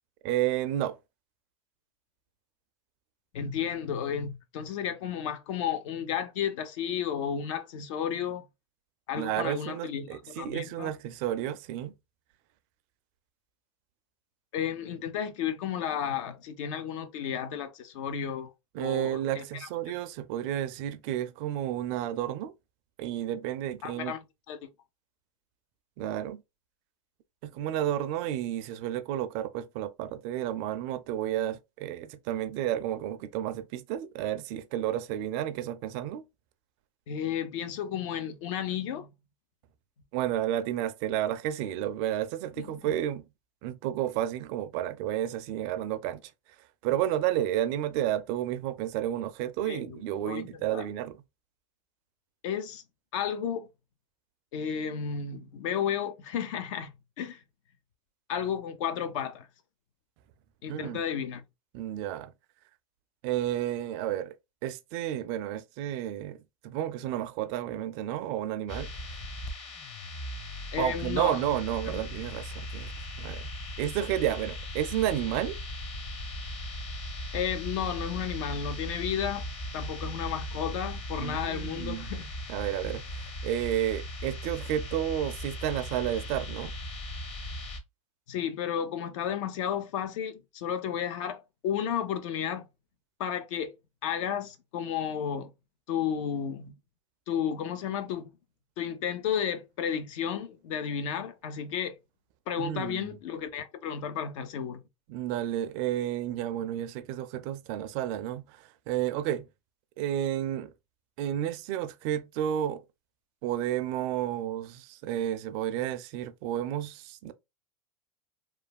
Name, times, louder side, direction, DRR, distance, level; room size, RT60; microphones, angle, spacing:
voice 1, 0.2-1.0 9.1-11.9 18.7-22.5 23.0-24.1 26.0-26.4 27.4-36.2 40.1-43.2 43.6-46.3 46.8-51.2 60.7-61.0 61.7-62.3 63.2-64.3 64.6-66.4 66.6-68.9 70.8-72.9 73.2-73.5 73.8-75.6 81.2-82.1 82.5-86.7 102.6-103.1 105.1-109.5 110.0-110.7 111.2-112.8 113.4-117.3, right 12 dB, 50° right, 0.4 m, -31 dB
voice 2, 3.3-8.5 9.1-10.9 14.5-18.5 18.8-19.7 23.8-24.2 24.5-24.7 37.1-39.1 42.6-42.9 49.7-50.5 50.7-50.9 52.4-52.8 53.1-53.7 54.5-57.4 58.3-59.5 60.6-61.4 70.7-71.4 71.9-72.0 77.3-79.5 79.7-82.3 88.3-92.7 93.2-93.7 94.0-95.5 95.9-96.7 97.3-98.3 98.8-102.0 102.5-104.8, left 8 dB, 65° left, 0.6 m, -33 dB
sound 1, 68.7-87.8, equal, 35° left, 0.9 m, -38 dB
3.1 x 2.3 x 2.3 m
hypercardioid pair, 115°, 18 cm